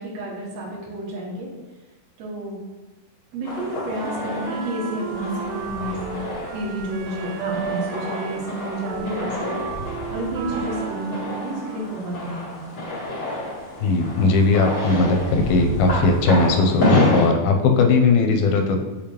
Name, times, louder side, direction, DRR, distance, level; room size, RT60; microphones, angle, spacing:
voice 1, 0.0-1.5 2.2-2.6 3.3-6.2 6.5-12.6, right 1 dB, 55° right, -7 dB, 2.5 m, -30 dB
sound 1, 3.4-17.3, left 1 dB, 35° left, 2.1 m, -28 dB
Wind instrument woodwind instrument, 4.0-12.1, right 8 dB, 80° right, 2.3 m, -34 dB
voice 2, 13.8-18.8, left 3 dB, 85° left, 4 dB, 2.6 m, -18 dB
6.9 x 5.0 x 3.0 m, 1.1 s
omnidirectional pair, 4.3 m